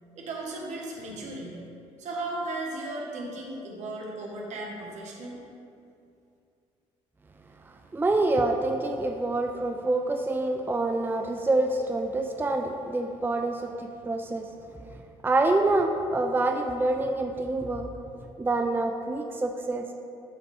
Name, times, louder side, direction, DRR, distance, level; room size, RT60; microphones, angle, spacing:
voice 1, 0.1-1.6 2.0-5.4, right 2 dB, 70° right, -1 dB, 1.4 m, -36 dB
voice 2, 7.7-14.5 15.2-17.9 18.4-19.9, right 2 dB, 15° right, 4 dB, 0.5 m, -26 dB
11.0 x 4.0 x 3.5 m, 2.5 s
supercardioid pair, 70°, 13 cm